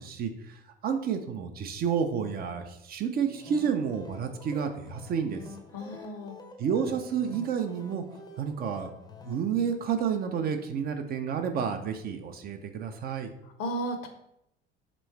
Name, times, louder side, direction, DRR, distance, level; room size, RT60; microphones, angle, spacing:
voice 1, 0.0-5.4 6.6-8.0 8.4-8.9 9.3-13.3, right 7 dB, 35° right, 6 dB, 0.4 m, -30 dB
sound 1, 3.2-9.4, left 4 dB, 15° left, 0.6 m, -48 dB
voice 2, 5.7-6.4 13.6-14.1, right 1 dB, 50° left, 6 dB, 0.7 m, -34 dB
3.1 x 3.0 x 4.4 m, 0.79 s
figure-of-eight pair, 60°, 30 cm